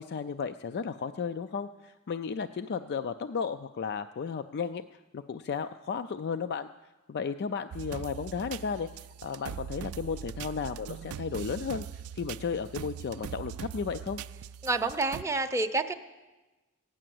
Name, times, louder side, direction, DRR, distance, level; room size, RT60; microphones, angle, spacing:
voice 1, 0.0-6.7 7.1-8.9 9.2-14.2, left 6 dB, 50° left, 10 dB, 0.4 m, -34 dB
sound 1, 7.7-15.2, right 8 dB, 80° right, 0.4 m, -41 dB
voice 2, 14.6-15.9, right 3 dB, 15° right, 6 dB, 0.6 m, -28 dB
15.0 x 9.9 x 7.7 m, 1.2 s
head